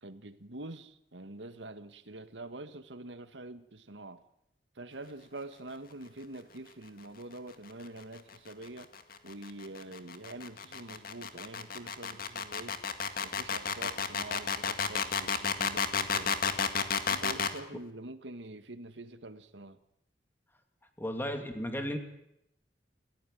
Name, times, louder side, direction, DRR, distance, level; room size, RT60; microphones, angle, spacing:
voice 1, 0.0-4.2 4.7-8.9 9.2-12.8 13.2-16.3 17.1-19.8, right 2 dB, 90° right, 1.8 m, -45 dB
sound 1, 8.3-17.6, left 6 dB, 55° left, 2.0 m, -31 dB
voice 2, 21.0-22.0, equal, 10° left, 2.8 m, -34 dB
29.0 x 15.5 x 9.4 m
head